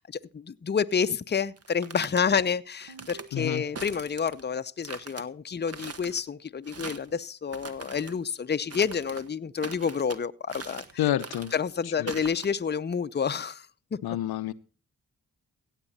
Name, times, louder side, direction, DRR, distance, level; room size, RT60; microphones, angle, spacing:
voice 1, 0.0-10.8 11.5-13.7 13.9-14.0, left 6 dB, 30° left, 0.6 m, -29 dB
sound 1, 1.6-2.2 2.8-3.3 3.8-4.4 4.8-5.2 5.7-6.2 6.6-7.1 7.5-8.2 8.7-9.3 9.6-10.2 10.5-10.9 11.2-11.6 12.1-12.5, right 4 dB, 40° right, 1.3 m, -41 dB
Ringtone, 2.9-4.0, right 5 dB, 60° right, 1.2 m, -48 dB
voice 2, 3.3-3.6 11.0-11.5 12.0-12.1 14.0-14.5, left 12 dB, 80° left, 0.6 m, -28 dB
15.5 x 8.2 x 4.1 m
cardioid pair, 50°, 37 cm